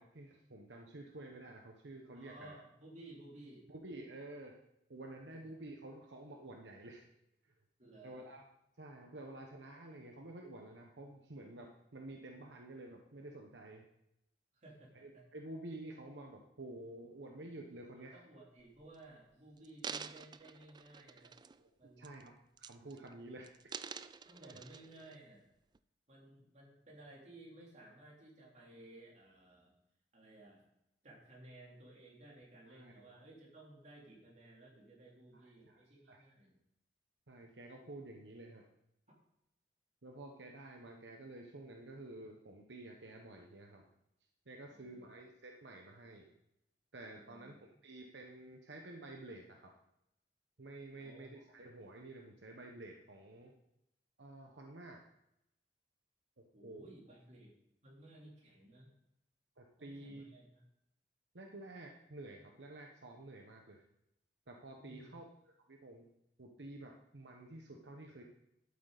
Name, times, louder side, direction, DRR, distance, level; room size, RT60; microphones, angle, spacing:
voice 1, 0.0-2.5 3.7-4.5 4.9-7.0 7.4-7.5 8.0-8.4 8.8-13.8 15.0-18.2 21.6-21.7 22.0-22.3 22.6-23.7 24.4-24.6 32.7-32.9 35.3-36.3 37.3-38.7 40.0-43.9 44.5-46.3 46.9-49.7 50.6-53.5 54.2-55.0 56.4-56.9 59.6-60.3 61.3-63.8 64.5-66.1 66.4-68.2, right 2 dB, 75° right, 1 dB, 1.1 m, -51 dB
voice 2, 2.1-3.7 5.3-5.5 7.8-8.2 14.6-15.2 18.1-21.4 21.8-22.1 22.9-23.0 24.2-25.5 26.1-29.7 30.1-30.6 31.0-36.6 44.7-45.1 47.1-47.5 50.9-51.4 56.5-57.5 57.8-58.9 59.8-60.6 64.8-65.1, right 1 dB, 40° right, -3 dB, 3.4 m, -57 dB
sound 1, 18.6-19.0 19.6-21.7 22.0-22.3 22.6-23.1 23.4-25.2 25.7-25.8, right 6 dB, 25° right, 0.3 m, -48 dB
12.0 x 8.5 x 4.1 m, 0.82 s
head